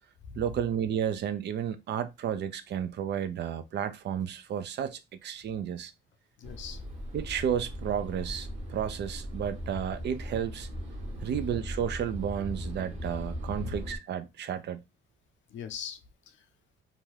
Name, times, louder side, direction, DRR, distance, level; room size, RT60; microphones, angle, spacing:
voice 1, 0.4-5.9 7.1-10.7 11.2-14.8, right 9 dB, 60° right, 0.5 m, -32 dB
voice 2, 6.4-6.8 11.2-11.4 13.6-13.7 15.5-16.5, left 7 dB, 70° left, 0.6 m, -41 dB
sound 1, 6.4-14.0, equal, 35° right, 1.0 m, -38 dB
2.6 x 2.3 x 3.2 m
cardioid pair, 90°, 20 cm